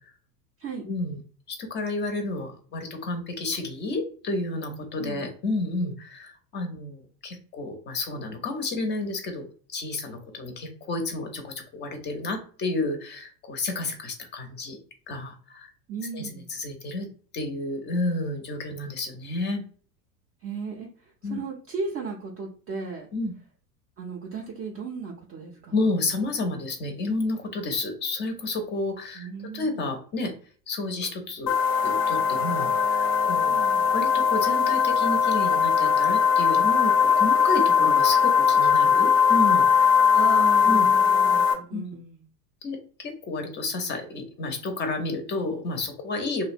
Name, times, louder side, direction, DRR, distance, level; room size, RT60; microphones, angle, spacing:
voice 1, 0.9-1.2 1.5-14.8 15.1-15.7 16.1-17.1 17.3-19.6 21.2-21.4 23.1-23.3 25.7-29.3 29.5-30.3 30.7-31.5 31.8-33.6 33.9-39.9 40.7-40.9 41.7-41.9 42.6-46.4, left 2 dB, 20° left, 5 dB, 0.5 m, -31 dB
voice 2, 5.0-5.3 15.9-16.5 20.4-23.1 24.0-25.7 29.1-29.9 33.5-33.9 40.0-42.2, right 5 dB, 30° right, -1 dB, 0.4 m, -36 dB
sound 1, 31.5-41.5, left 6 dB, 85° left, 0.8 m, -20 dB
2.6 x 2.1 x 2.4 m, 0.42 s
hypercardioid pair, 100°, 49 cm